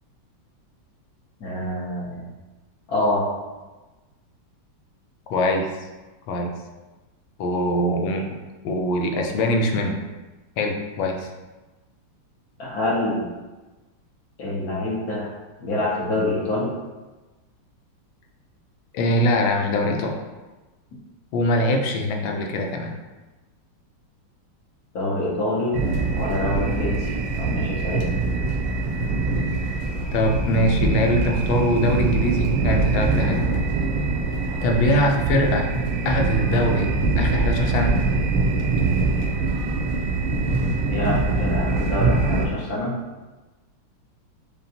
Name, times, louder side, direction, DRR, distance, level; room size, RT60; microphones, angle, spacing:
voice 1, 1.4-2.3 2.9-3.3 12.6-13.2 14.4-15.3 15.6-16.7 24.9-25.8 26.1-28.1 34.9-35.0 40.9-42.9, left 1 dB, 60° left, -5 dB, 1.2 m, -26 dB
voice 2, 5.3-5.7 6.3-6.5 7.4-8.3 8.6-10.0 10.6-11.3 18.9-20.1 21.3-22.9 30.1-33.5 34.6-35.7 36.0-36.9 37.2-38.0, left 1 dB, 85° left, 2 dB, 1.4 m, -22 dB
sound 1, 25.7-42.5, right 3 dB, 85° right, 1.3 m, -23 dB
6.6 x 2.3 x 2.8 m, 1.2 s
omnidirectional pair, 2.1 m